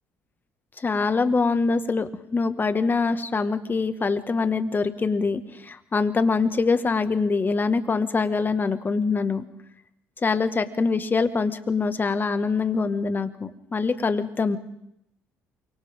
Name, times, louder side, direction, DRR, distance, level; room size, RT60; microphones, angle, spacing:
voice 1, 0.8-9.5 10.2-14.6, left 4 dB, 30° left, 10 dB, 1.8 m, -24 dB
28.0 x 25.0 x 3.8 m, 0.77 s
hypercardioid pair, 60°, 6 cm